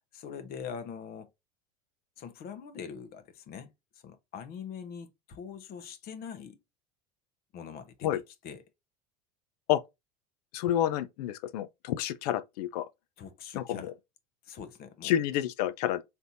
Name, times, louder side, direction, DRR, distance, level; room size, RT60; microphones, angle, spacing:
voice 1, 0.1-1.3 2.2-6.6 7.5-8.6 13.2-13.9 14.4-15.1, left 7 dB, 50° left, 1.0 m, -43 dB
voice 2, 10.5-12.9 13.6-13.9 15.0-16.0, left 11 dB, 75° left, 0.7 m, -29 dB
4.4 x 3.4 x 2.6 m
hypercardioid pair, 95°, 21 cm